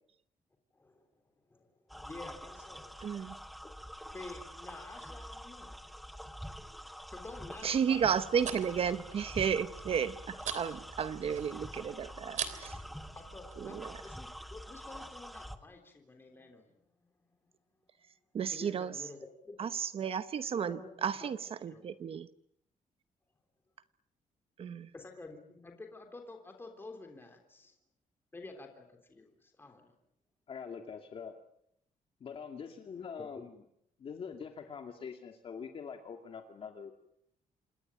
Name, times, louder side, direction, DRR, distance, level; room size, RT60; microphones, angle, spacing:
voice 1, 0.7-1.1 1.5-3.0 4.1-5.8 7.1-8.1 11.3-11.4 13.1-17.1 18.5-19.7 20.6-21.3 21.7-21.8 24.9-27.7 28.3-29.9 32.9-33.4, left 3 dB, 15° left, 4 dB, 3.4 m, -50 dB
sound 1, 1.9-15.6, equal, ahead, 1.4 m, -46 dB
voice 2, 3.0-3.4 7.6-12.8 13.6-14.0 18.3-19.0 19.6-22.3 24.6-24.9, right 7 dB, 45° right, 13 dB, 1.0 m, -33 dB
sound 2, 8.0-13.8, right 8 dB, 65° right, 3.3 m, -44 dB
voice 3, 30.5-31.3 32.2-33.5 34.0-36.9, left 6 dB, 45° left, 4 dB, 2.4 m, -44 dB
27.5 x 20.5 x 9.0 m, 0.73 s
wide cardioid pair, 180°, 14 cm